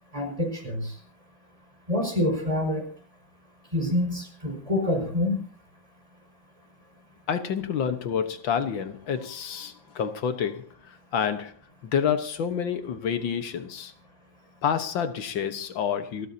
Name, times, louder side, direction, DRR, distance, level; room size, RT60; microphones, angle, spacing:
voice 1, 0.1-1.0 1.9-2.9 3.7-5.4, left 1 dB, 15° right, 5.3 m, -26 dB
voice 2, 7.3-11.5 11.8-13.9 14.6-16.3, left 7 dB, 85° left, 2.0 m, -28 dB
28.5 x 13.0 x 2.8 m
omnidirectional pair, 2.0 m